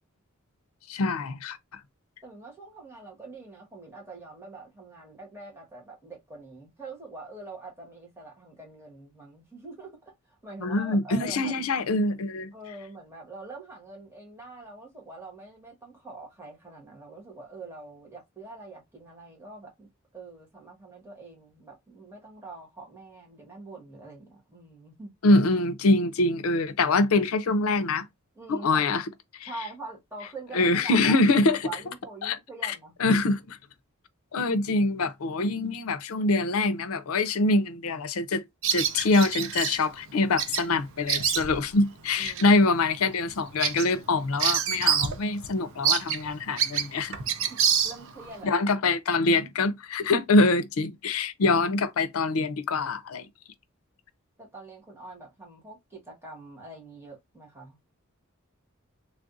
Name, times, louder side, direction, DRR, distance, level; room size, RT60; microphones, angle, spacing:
voice 1, 0.9-1.6 10.6-12.5 25.2-28.0 28.5-29.0 30.5-31.6 32.2-32.4 32.6-32.7 33.0-33.6 34.3-38.4 38.7-47.2 48.4-53.2, left 2 dB, 75° left, 0.5 m, -24 dB
voice 2, 2.2-11.5 12.5-19.9 20.1-25.1 28.3-29.0 29.4-32.9 42.2-42.5 47.5-48.5 54.4-57.8, right 2 dB, 10° right, 1.3 m, -44 dB
Bird vocalization bird call bird song, 38.6-39.8 40.4-40.7 40.9-41.7 42.2-42.4 42.9-43.0 43.3-45.2 45.4-45.5 45.8-48.3, right 8 dB, 65° right, 0.6 m, -26 dB
3.3 x 2.4 x 2.5 m
head